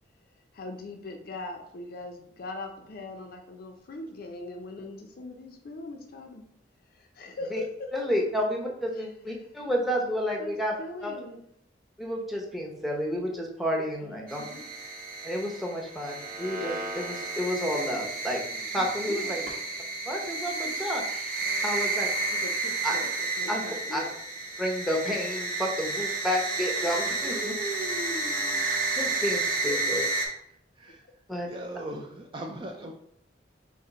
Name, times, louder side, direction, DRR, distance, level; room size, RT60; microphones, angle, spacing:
voice 1, 0.5-6.5 7.0-8.1 8.9-9.1 10.4-11.4 14.0-14.7 19.0-19.5 22.3-24.2 29.5-29.9, left 2 dB, 55° left, 3 dB, 0.5 m, -41 dB
voice 2, 7.9-11.1 12.0-14.4 15.2-18.4 18.7-19.4 20.1-22.1 22.8-23.0 23.5-23.6 23.9-24.0 24.6-27.5 28.9-30.0 31.3-31.5, equal, ahead, -1 dB, 0.7 m, -30 dB
sound 1, 14.3-30.3, right 3 dB, 50° right, 0.9 m, -31 dB
voice 3, 27.2-28.6 30.8-31.0 31.5-32.9, right 2 dB, 25° right, 2 dB, 0.3 m, -38 dB
4.3 x 2.6 x 3.8 m, 0.73 s
head